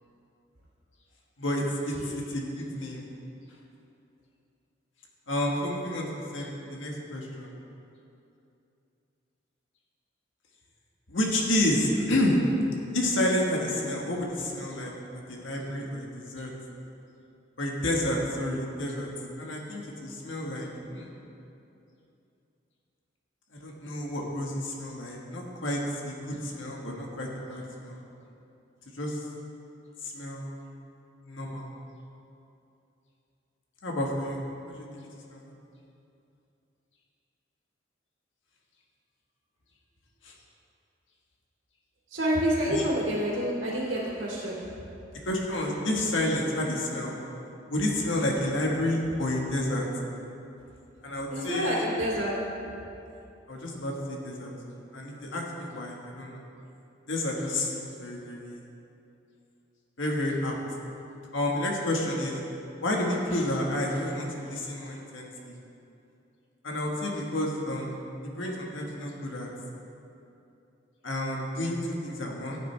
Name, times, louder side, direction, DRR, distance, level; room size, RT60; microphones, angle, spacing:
voice 1, 1.4-3.0 5.3-7.5 11.1-12.4 12.9-14.9 15.3-16.5 17.6-19.1 19.4-21.1 23.5-28.0 28.9-29.2 30.0-30.5 31.3-31.7 33.8-34.4 34.6-35.5 40.2-40.3 42.7-42.8 45.2-47.1 47.7-49.8 51.0-51.8 53.5-56.4 57.1-58.6 60.0-60.5 61.3-62.4 62.8-65.5 66.6-68.0 68.2-69.5 71.0-72.6, left 1 dB, 80° left, -1 dB, 1.6 m, -30 dB
voice 2, 42.1-44.6 51.3-52.3, equal, 75° right, -7 dB, 2.5 m, -28 dB
15.0 x 9.0 x 3.4 m, 2.7 s
head